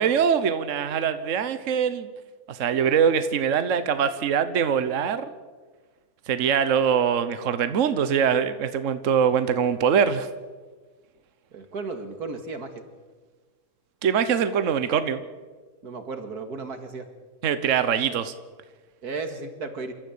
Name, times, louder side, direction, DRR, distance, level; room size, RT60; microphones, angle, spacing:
voice 1, 0.0-2.1 2.5-5.3 6.3-10.3 14.0-15.2 17.4-18.3, right 7 dB, 60° right, 11 dB, 1.3 m, -23 dB
voice 2, 11.5-12.8 15.8-17.1 19.0-19.9, right 3 dB, 90° right, 7 dB, 2.5 m, -34 dB
27.0 x 14.0 x 8.5 m, 1.4 s
omnidirectional pair, 1.6 m